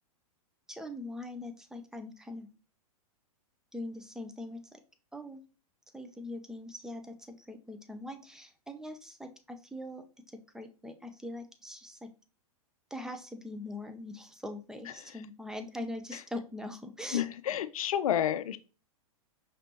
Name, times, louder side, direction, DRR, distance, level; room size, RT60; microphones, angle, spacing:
voice 1, 0.7-2.5 3.7-4.8 5.1-5.4 5.9-10.0 10.3-12.1 12.9-17.2, left 1 dB, 5° right, 7 dB, 0.4 m, -42 dB
voice 2, 17.1-18.6, left 10 dB, 75° left, 14 dB, 0.4 m, -30 dB
5.1 x 3.3 x 2.8 m, 0.34 s
hypercardioid pair, 110°, 18 cm